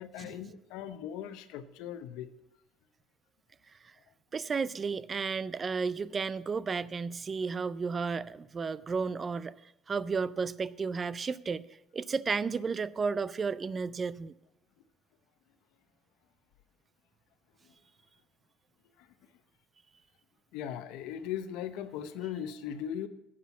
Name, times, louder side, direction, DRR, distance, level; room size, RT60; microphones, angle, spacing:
voice 1, 0.0-2.3 20.5-23.1, left 9 dB, 85° left, 0.8 m, -38 dB
voice 2, 4.3-11.7 11.9-14.3, right 5 dB, 20° right, 0.3 m, -33 dB
10.0 x 7.5 x 7.2 m
cardioid pair, 165°, 0 cm